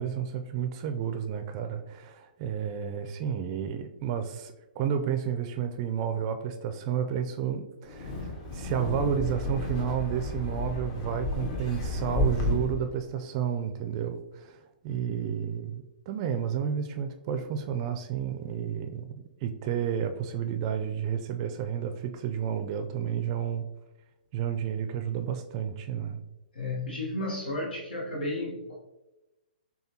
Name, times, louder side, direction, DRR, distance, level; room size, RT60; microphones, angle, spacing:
voice 1, 0.0-23.7 24.3-26.2, right 8 dB, 35° right, 7 dB, 0.4 m, -31 dB
Wind, 7.9-12.9, left 2 dB, 40° left, 0.8 m, -31 dB
voice 2, 26.5-28.7, left 2 dB, 80° left, -3 dB, 0.9 m, -33 dB
6.6 x 2.2 x 2.8 m, 0.98 s
hypercardioid pair, 140°, 5 cm